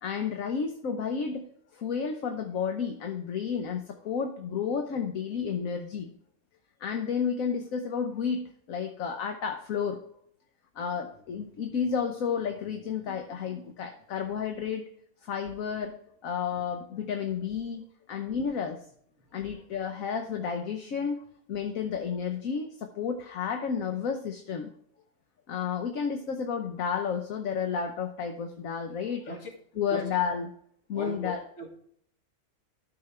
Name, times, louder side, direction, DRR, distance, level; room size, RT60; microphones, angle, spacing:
voice 1, 0.0-1.5 1.7-6.1 6.8-10.0 10.7-14.8 15.2-16.0 16.2-18.8 19.3-21.2 21.5-24.7 25.5-29.2 29.7-30.5 30.9-31.4, left 6 dB, 70° left, 5 dB, 1.3 m, -31 dB
voice 2, 30.9-31.7, right 1 dB, 55° left, 2 dB, 2.2 m, -38 dB
13.0 x 5.9 x 3.2 m, 0.66 s
omnidirectional pair, 1.5 m